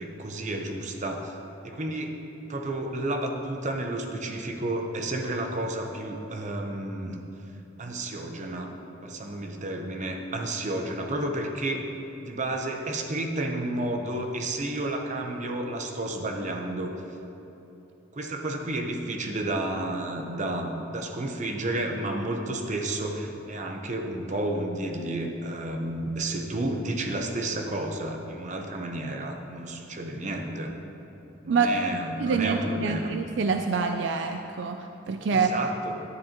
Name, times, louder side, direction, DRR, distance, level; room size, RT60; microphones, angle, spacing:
voice 1, 0.0-1.4 1.6-7.2 7.8-8.7 9.0-11.9 12.2-16.9 18.1-30.7 31.4-33.1 35.3-36.0, right 1 dB, 40° right, 3 dB, 0.8 m, -31 dB
voice 2, 32.2-35.5, right 5 dB, 70° right, 6 dB, 0.4 m, -26 dB
11.5 x 9.6 x 2.9 m, 2.9 s
head